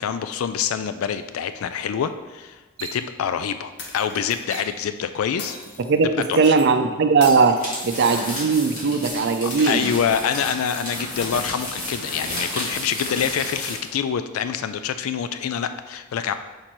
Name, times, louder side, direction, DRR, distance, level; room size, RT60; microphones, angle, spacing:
voice 1, 0.0-5.6 6.3-6.5 9.4-16.3, left 7 dB, 85° left, 11 dB, 0.3 m, -26 dB
sound 1, 2.8-3.0 4.5-4.8 6.2-6.7 7.9-8.2 9.6-10.0, right 6 dB, 85° right, 0.8 m, -38 dB
sound 2, 3.8-4.6 5.4-6.0 7.2-8.4 9.5-10.2 11.2-12.2, left 4 dB, 55° left, 0.9 m, -38 dB
voice 2, 6.3-7.6 7.8-9.9, right 4 dB, 55° right, 7 dB, 0.4 m, -18 dB
sound 3, 7.5-13.9, left 1 dB, 40° left, 1.9 m, -32 dB
5.1 x 4.4 x 4.5 m, 1.2 s
head